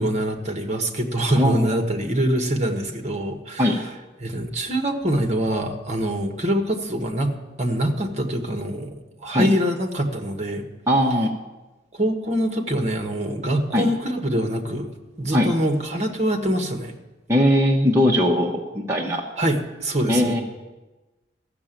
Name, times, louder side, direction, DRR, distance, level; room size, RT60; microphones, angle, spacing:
voice 1, 0.0-3.8 4.2-10.6 11.9-14.9 15.2-16.9 19.4-20.4, right 1 dB, 40° right, 4 dB, 1.4 m, -24 dB
voice 2, 1.4-1.7 3.6-3.8 9.3-9.5 10.9-11.3 13.7-13.9 15.3-15.5 17.3-19.2 20.1-20.4, equal, 15° right, -2 dB, 1.0 m, -20 dB
14.5 x 6.9 x 8.9 m, 1.1 s
head